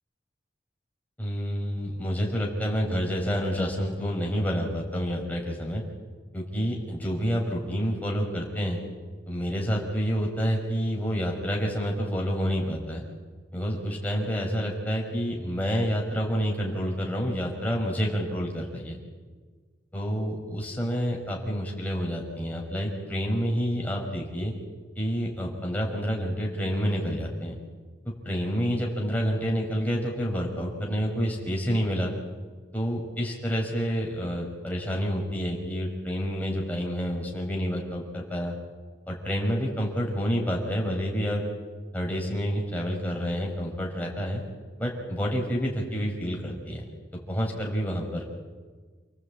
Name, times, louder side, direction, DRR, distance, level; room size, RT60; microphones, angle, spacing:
voice 1, 1.2-5.8 6.3-8.8 9.3-13.0 13.5-19.0 19.9-24.5 25.0-27.6 28.0-32.1 32.7-38.6 39.1-41.4 41.9-44.4 44.8-46.8 47.1-48.3, equal, 10° left, -1 dB, 5.6 m, -28 dB
29.5 x 18.0 x 8.8 m, 1.4 s
head